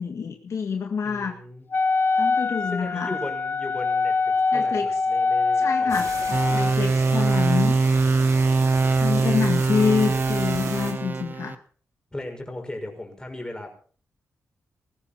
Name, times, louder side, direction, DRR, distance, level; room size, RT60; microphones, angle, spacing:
voice 1, 0.0-1.4 2.2-3.1 4.5-4.9 5.6-7.8 9.0-11.6, left 6 dB, 65° left, 3 dB, 2.0 m, -27 dB
voice 2, 1.0-1.7 2.6-6.7 12.1-13.7, left 1 dB, 15° left, 3 dB, 5.7 m, -38 dB
Wind instrument woodwind instrument, 1.7-6.7, left 4 dB, 40° left, 0.9 m, -24 dB
sound 1, 5.9-10.9, right 5 dB, 75° right, 3.8 m, -36 dB
sound 2, 6.3-11.5, right 3 dB, 35° right, 1.0 m, -22 dB
19.0 x 15.0 x 4.4 m, 0.43 s
cardioid pair, 80°, 5 cm